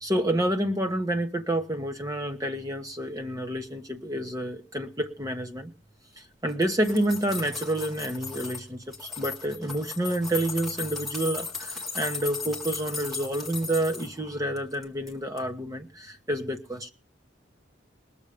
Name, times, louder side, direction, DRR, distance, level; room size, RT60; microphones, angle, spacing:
voice 1, 0.0-5.7 6.4-16.9, right 1 dB, 20° right, 5 dB, 1.2 m, -29 dB
sound 1, 6.5-8.6 8.9-14.1 14.6-15.1 15.4-15.5, left 4 dB, ahead, 1.9 m, -36 dB
20.0 x 7.0 x 5.1 m, 0.34 s
head